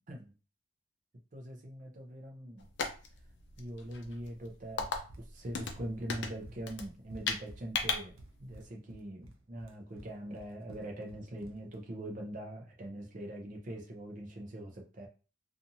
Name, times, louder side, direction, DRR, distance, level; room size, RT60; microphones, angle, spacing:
voice 1, 1.3-2.6 3.6-4.9 5.2-15.1, right 1 dB, 40° right, 1 dB, 0.5 m, -43 dB
sound 1, 2.6-8.6, left 5 dB, 60° left, 0.4 m, -38 dB
Run, 4.8-11.8, right 1 dB, 85° right, 0.5 m, -53 dB
2.7 x 2.4 x 2.7 m, 0.34 s
head